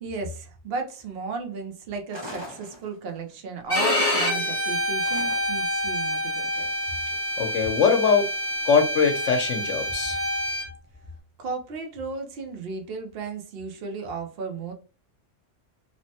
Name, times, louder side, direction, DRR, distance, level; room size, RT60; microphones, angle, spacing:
voice 1, 0.0-6.7 11.4-14.7, right 4 dB, 60° right, 4 dB, 0.8 m, -34 dB
sound 1, 2.1-3.3 5.0-5.8, equal, 30° right, 0.6 m, -41 dB
Bowed string instrument, 3.7-10.7, left 1 dB, 10° left, 0.9 m, -27 dB
voice 2, 7.4-8.3 8.6-10.2, left 5 dB, 75° left, 5 dB, 1.0 m, -22 dB
3.1 x 2.1 x 2.7 m, 0.34 s
omnidirectional pair, 1.3 m